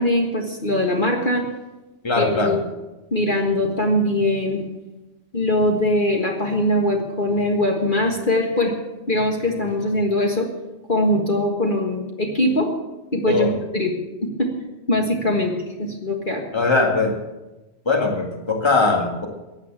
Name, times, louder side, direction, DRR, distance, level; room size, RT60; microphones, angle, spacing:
voice 1, 0.0-1.4 2.2-2.6 3.1-4.6 5.3-8.7 9.1-10.5 10.9-12.7 13.1-13.9 14.2-14.5 14.9-15.5 15.8-16.4, left 1 dB, 40° left, 0 dB, 1.8 m, -21 dB
voice 2, 2.0-2.6 13.3-13.6 16.5-17.2 17.9-19.3, left 3 dB, 20° left, 2 dB, 1.8 m, -20 dB
15.5 x 9.2 x 7.3 m, 1.1 s
omnidirectional pair, 1.3 m